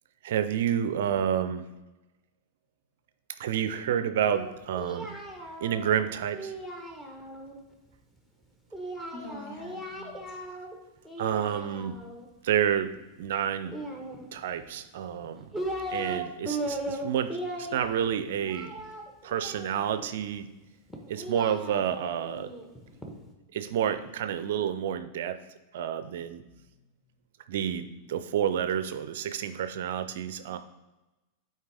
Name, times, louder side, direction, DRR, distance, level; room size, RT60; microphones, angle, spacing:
voice 1, 0.2-1.6 3.4-5.1 5.6-6.5 11.2-12.0 12.4-12.9 13.2-13.8 14.3-15.4 15.9-18.7 19.2-20.5 21.1-22.5 23.5-25.4 25.7-26.4 27.5-30.6, right 9 dB, 60° right, 11 dB, 0.4 m, -29 dB
Singing, 4.3-7.6 8.7-10.7 11.0-12.3 13.7-14.6 15.2-16.2 16.4-20.1 20.9-23.1, right 1 dB, 10° left, 1.2 m, -37 dB
voice 2, 9.1-10.4 26.1-26.2 26.7-26.8 28.0-28.4 30.3-30.6, left 1 dB, 45° left, 1 dB, 1.7 m, -47 dB
7.8 x 4.5 x 3.4 m, 1.0 s
figure-of-eight pair, 90°, 0 cm